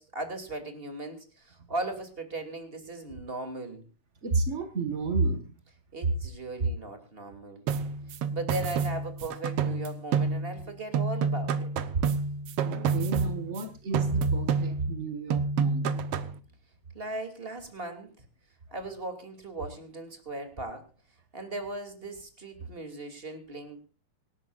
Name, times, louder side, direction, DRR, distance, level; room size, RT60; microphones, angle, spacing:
voice 1, 0.0-3.9 5.9-7.6 8.3-11.7 16.9-18.2 18.7-20.9 21.3-23.9, right 2 dB, 15° right, 7 dB, 2.5 m, -38 dB
voice 2, 4.2-5.5 6.6-6.7 12.6-16.0, right 3 dB, 55° right, 8 dB, 0.7 m, -30 dB
sound 1, 7.7-10.7 10.9-13.6 13.9-15.0 15.3-16.4, right 5 dB, 75° right, 1.3 m, -29 dB
25.5 x 12.5 x 2.5 m, 0.32 s
omnidirectional pair, 4.1 m